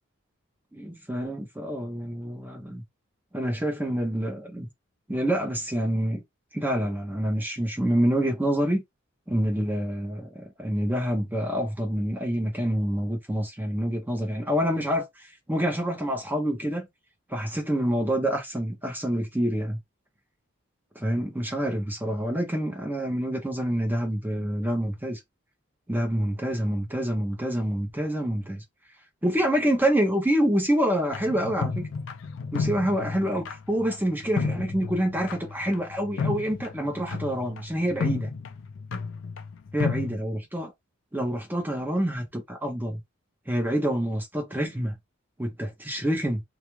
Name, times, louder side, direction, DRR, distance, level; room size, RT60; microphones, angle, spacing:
voice 1, 0.7-2.8 3.3-4.7 5.1-6.2 6.5-8.8 9.3-16.9 17.3-19.8 20.9-25.2 25.9-28.6 29.2-31.9 32.5-38.3 39.7-40.7 41.1-43.0 43.5-44.9 45.4-46.4, equal, 10° right, 0.6 m, -27 dB
sound 1, 31.1-40.2, left 4 dB, 60° left, 0.4 m, -32 dB
2.3 x 2.1 x 3.0 m
head